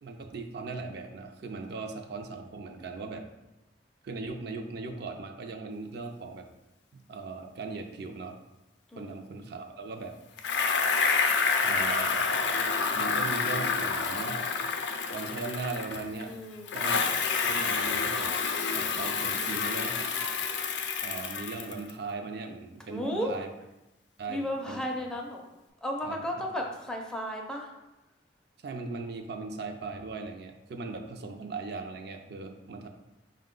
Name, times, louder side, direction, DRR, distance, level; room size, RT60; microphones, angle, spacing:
voice 1, 0.0-3.3 4.0-6.5 6.9-8.4 9.0-10.2 11.6-14.4 15.1-16.3 16.7-17.0 17.4-18.3 18.6-20.1 21.0-23.5 24.2-24.8 26.0-26.5 28.6-32.9, right 3 dB, 65° right, 4 dB, 0.4 m, -38 dB
voice 2, 8.9-9.2 16.3-16.8 19.4-19.8 22.9-23.3 24.3-25.4 25.8-27.7, equal, 5° left, 0 dB, 0.4 m, -34 dB
Bicycle, 10.4-16.2 16.7-21.9, left 5 dB, 70° left, 0.4 m, -28 dB
5.2 x 2.2 x 3.7 m, 0.97 s
head